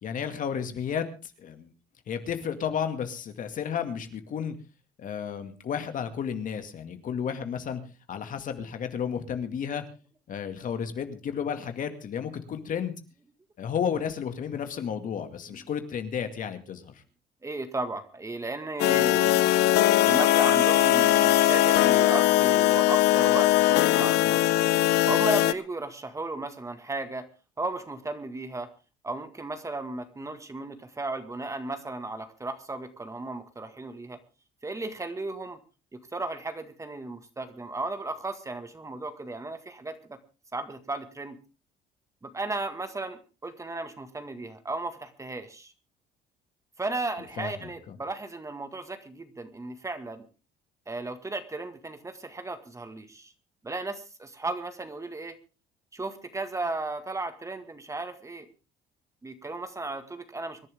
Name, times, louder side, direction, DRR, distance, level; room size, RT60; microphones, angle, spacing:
voice 1, 0.0-1.7 2.1-4.5 5.0-7.8 8.1-9.8 10.3-12.9 13.6-17.0 47.4-48.0, left 7 dB, 50° left, 8 dB, 2.2 m, -32 dB
voice 2, 17.4-19.5 20.0-24.6 25.1-27.3 27.6-28.7 29.0-34.2 34.6-35.6 35.9-40.2 40.5-41.4 42.2-45.7 46.8-50.2 50.9-53.3 53.6-55.4 55.9-58.5 59.2-60.7, right 2 dB, 20° right, 9 dB, 1.8 m, -35 dB
sound 1, 18.8-25.5, left 14 dB, 80° left, 0.8 m, -21 dB
25.5 x 11.0 x 3.6 m, 0.32 s
cardioid pair, 110°, 17 cm